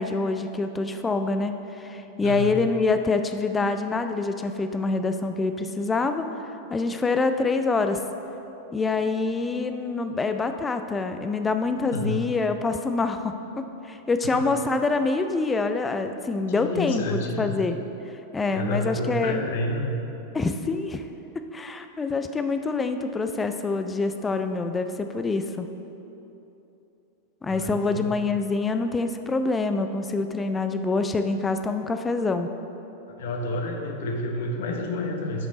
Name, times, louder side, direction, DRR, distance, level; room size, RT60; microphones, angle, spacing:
voice 1, 0.0-6.3 6.7-8.0 8.7-17.8 18.3-19.4 20.3-21.0 21.3-25.7 27.4-32.5, left 3 dB, 15° left, 8 dB, 0.4 m, -26 dB
voice 2, 2.2-2.6 11.9-12.2 16.5-17.5 18.5-20.0 27.5-28.1 33.1-35.5, left 1 dB, 55° left, 3 dB, 1.0 m, -29 dB
10.5 x 5.2 x 4.0 m, 3.0 s
figure-of-eight pair, 90°, 0 cm